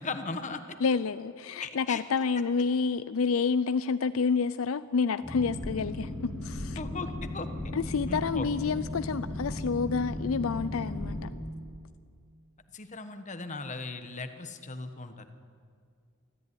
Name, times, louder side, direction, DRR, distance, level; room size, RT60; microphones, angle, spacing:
voice 1, 0.0-0.8 1.6-2.0 6.8-7.5 8.1-8.5 12.7-15.3, left 3 dB, 35° left, 8 dB, 1.4 m, -38 dB
voice 2, 0.8-6.8 7.7-11.3, left 5 dB, 75° left, 14 dB, 0.5 m, -29 dB
Boat Water vehicle, 5.2-11.2, left 1 dB, ahead, 5.5 m, -36 dB
23.5 x 14.0 x 9.9 m, 2.2 s
head